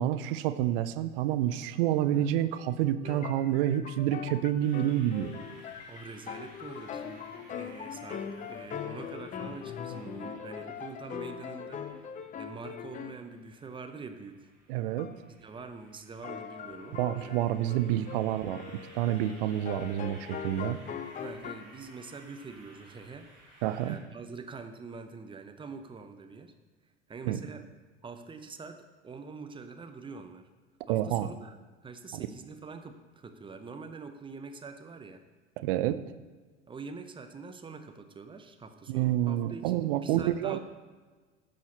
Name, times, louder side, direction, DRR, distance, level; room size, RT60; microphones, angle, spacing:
voice 1, 0.0-5.3 14.7-15.1 16.9-18.6 18.9-20.8 23.6-24.0 27.3-27.4 30.9-31.3 32.1-32.3 35.6-36.0 38.9-40.6, right 12 dB, 50° right, 12 dB, 0.6 m, -28 dB
sound 1, 3.0-13.2 15.0-15.2 16.2-21.6, left 7 dB, 20° left, 0.6 m, -41 dB
sound 2, 4.6-24.0, right 1 dB, 85° right, 2.9 m, -57 dB
voice 2, 5.9-11.8 12.4-14.5 15.3-17.4 18.3-18.4 21.2-23.3 23.8-26.5 27.1-27.7 28.0-30.5 30.9-31.6 31.8-35.2 36.7-40.6, right 4 dB, 15° right, 7 dB, 0.7 m, -45 dB
15.0 x 6.3 x 2.9 m, 1.4 s
figure-of-eight pair, 75°, 36 cm